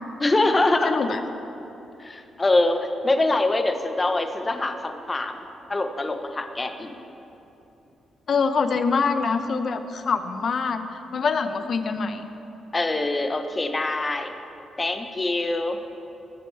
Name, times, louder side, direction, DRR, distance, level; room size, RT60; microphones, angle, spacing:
voice 1, 0.2-1.1 2.0-5.4 5.7-7.0 12.7-14.3 14.8-15.8, left 2 dB, 25° left, 6 dB, 0.8 m, -24 dB
voice 2, 0.9-1.2 8.3-12.3, left 5 dB, 50° left, 9 dB, 0.7 m, -25 dB
20.0 x 6.9 x 3.3 m, 3.0 s
cardioid pair, 105°, 0 cm